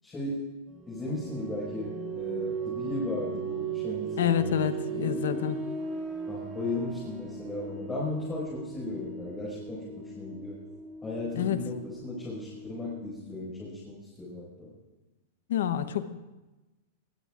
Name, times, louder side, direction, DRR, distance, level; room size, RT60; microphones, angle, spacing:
voice 1, 0.0-0.4 0.9-4.6 4.9-5.3 6.3-10.6 11.0-14.8, left 2 dB, 15° left, -7 dB, 5.6 m, -36 dB
sound 1, 0.7-13.2, right 5 dB, 25° right, 2.0 m, -38 dB
voice 2, 4.2-5.6 11.4-11.6 15.5-16.3, left 10 dB, 80° left, 11 dB, 1.0 m, -28 dB
21.5 x 18.0 x 2.5 m, 1.1 s
supercardioid pair, 150°, 0 cm